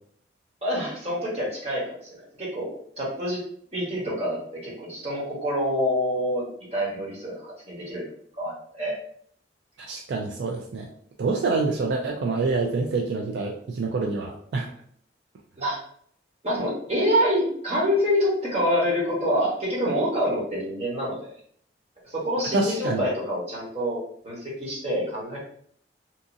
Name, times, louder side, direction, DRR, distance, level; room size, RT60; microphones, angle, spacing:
voice 1, 0.6-3.4 3.7-8.1 8.4-9.0 15.6-15.8 16.4-21.3 22.0-25.4, equal, 35° right, -5 dB, 1.0 m, -26 dB
voice 2, 9.9-10.9 11.2-14.7 22.5-23.0, right 3 dB, 70° right, 1 dB, 0.3 m, -26 dB
2.8 x 2.5 x 2.5 m, 0.63 s
head